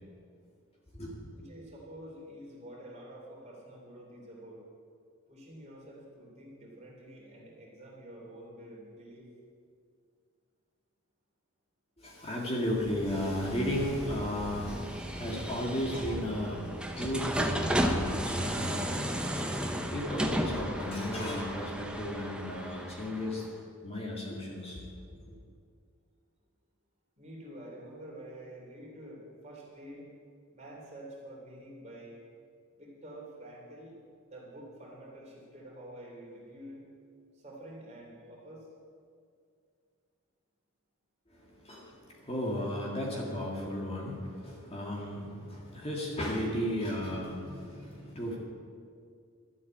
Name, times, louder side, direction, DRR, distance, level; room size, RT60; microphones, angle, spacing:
voice 1, 1.3-4.6 5.3-9.3 27.2-30.1 30.5-32.2 32.8-34.0 34.3-36.8 37.3-38.7, right 1 dB, 30° right, -3 dB, 3.3 m, -48 dB
voice 2, 12.0-25.4 41.3-48.4, left 1 dB, 25° left, -3 dB, 2.1 m, -35 dB
sound 1, 12.7-23.5, equal, 5° right, 0.8 m, -34 dB
12.5 x 8.2 x 8.7 m, 2.3 s
head